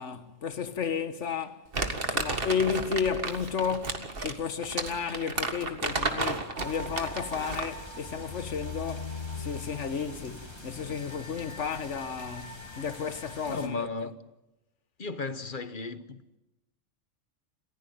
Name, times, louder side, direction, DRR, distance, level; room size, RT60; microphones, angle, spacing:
voice 1, 0.0-1.7 2.1-13.9, left 6 dB, 65° left, 1.6 m, -33 dB
Crumpling crinkling, 1.7-7.8, right 3 dB, 45° right, 2.0 m, -32 dB
sound 1, 6.6-13.7, left 2 dB, 20° left, 3.0 m, -41 dB
voice 2, 13.5-14.2 15.0-16.2, left 4 dB, 40° left, 1.2 m, -35 dB
28.0 x 15.5 x 9.3 m
omnidirectional pair, 1.3 m